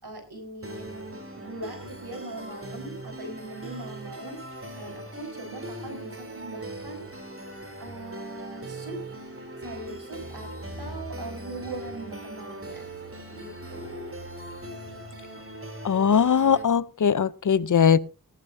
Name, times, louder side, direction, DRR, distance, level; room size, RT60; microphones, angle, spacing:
voice 1, 0.0-4.4 4.8-7.0 7.8-9.0 9.6-10.5 10.8-12.9 13.3-14.2, right 2 dB, 85° right, 4 dB, 4.3 m, -40 dB
sound 1, 0.6-16.6, right 1 dB, 35° right, 3.4 m, -40 dB
voice 2, 15.8-18.0, left 7 dB, 55° left, 19 dB, 0.6 m, -20 dB
18.5 x 12.0 x 2.6 m, 0.32 s
wide cardioid pair, 50°, 37 cm